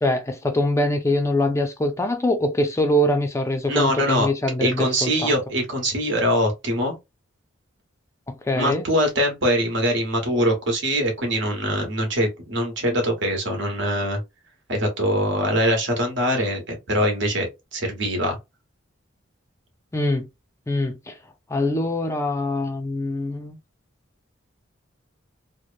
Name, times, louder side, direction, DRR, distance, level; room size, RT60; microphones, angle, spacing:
voice 1, 0.0-5.4 8.3-8.8 19.9-20.3 20.7-21.2 21.5-23.6, left 1 dB, 15° left, 0.4 m, -23 dB
voice 2, 3.7-4.3 4.6-6.9 8.5-14.2 14.7-18.4, equal, 65° right, 1.1 m, -23 dB
2.9 x 2.0 x 2.4 m
head